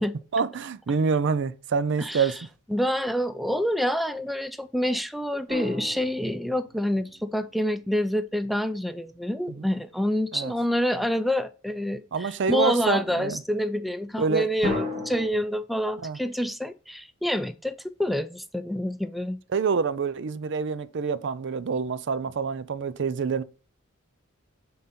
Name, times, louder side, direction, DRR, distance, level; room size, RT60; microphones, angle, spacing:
voice 1, 0.3-2.4 9.5-9.6 10.3-10.5 12.1-13.4 14.2-14.5 16.0-16.2 19.5-23.4, right 5 dB, 60° right, 0.5 m, -26 dB
voice 2, 2.0-2.3 2.7-19.4, equal, ahead, 0.3 m, -27 dB
sound 1, 5.5-7.6 14.6-15.3, left 2 dB, 35° right, 2.3 m, -33 dB
9.3 x 3.8 x 4.2 m
head